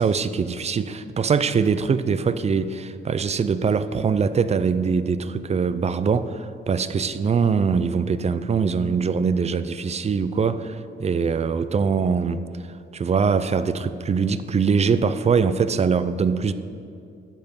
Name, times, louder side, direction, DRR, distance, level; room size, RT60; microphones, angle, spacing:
voice 1, 0.0-12.4 12.9-16.5, right 5 dB, 35° right, 13 dB, 0.5 m, -22 dB
12.0 x 8.1 x 5.3 m, 2.4 s
cardioid pair, 90°, 20 cm